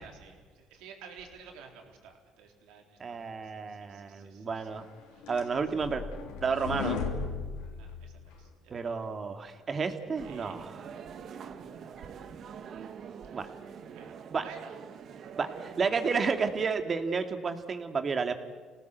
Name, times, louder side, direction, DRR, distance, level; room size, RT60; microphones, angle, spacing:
voice 1, 0.0-4.7 5.1-5.6 7.7-8.5 8.8-9.0 10.2-10.5 12.0-12.2 14.0-14.1 14.4-14.7 15.2-15.4, right 6 dB, 80° right, 3 dB, 4.1 m, -51 dB
voice 2, 3.0-4.9 5.3-6.0 6.4-7.0 8.7-10.9 13.3-13.5 14.3-14.4 15.4-18.3, right 5 dB, 40° right, 7 dB, 2.3 m, -31 dB
sound 1, 4.8-8.5, left 5 dB, 90° left, 3.3 m, -36 dB
sound 2, 10.2-16.7, right 7 dB, 55° right, 1.5 m, -45 dB
27.0 x 18.5 x 8.2 m, 1.5 s
supercardioid pair, 85°, 0 cm